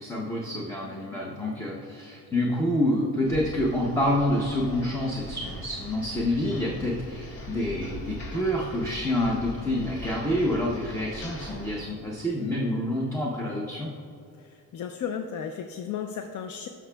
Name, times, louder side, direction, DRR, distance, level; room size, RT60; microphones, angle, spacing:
voice 1, 0.0-13.9, left 1 dB, 10° left, -3 dB, 0.6 m, -27 dB
sound 1, 3.2-11.8, equal, 80° left, 1.6 m, -41 dB
voice 2, 14.7-16.7, left 8 dB, 55° left, 6 dB, 0.4 m, -34 dB
14.0 x 6.0 x 2.2 m, 2.5 s
cardioid pair, 165°, 36 cm